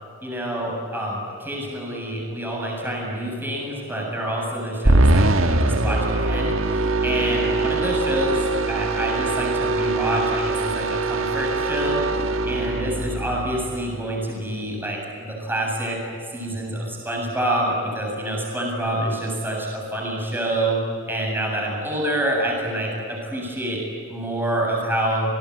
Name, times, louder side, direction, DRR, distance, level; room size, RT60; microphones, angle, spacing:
voice 1, 0.2-12.1 12.5-16.0 16.3-20.8 21.1-25.3, right 1 dB, 10° right, -1 dB, 7.6 m, -27 dB
sound 1, 4.8-14.2, right 2 dB, 65° right, 1.6 m, -22 dB
29.5 x 20.0 x 9.8 m, 2.6 s
head